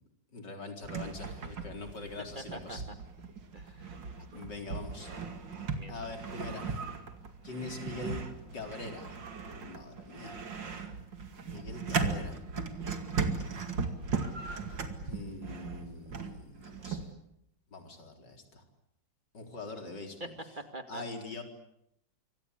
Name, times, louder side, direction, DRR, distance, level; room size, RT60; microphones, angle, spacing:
voice 1, 0.3-2.8 4.3-5.1 5.9-6.8 7.4-8.2 8.5-9.2 9.5-10.4 10.7-10.9 11.4-12.4 15.0-17.1 17.7-18.6 19.3-20.3 20.9-21.4, left 3 dB, 70° left, 4 dB, 4.8 m, -43 dB
sound 1, 0.8-17.1, right 4 dB, 80° right, 3.0 m, -37 dB
voice 2, 2.4-2.8 3.5-4.4 5.0-5.2 5.7-5.9 20.2-20.3 20.6-21.0, right 1 dB, 25° right, 7 dB, 2.4 m, -45 dB
26.5 x 25.0 x 8.3 m, 0.77 s
omnidirectional pair, 2.0 m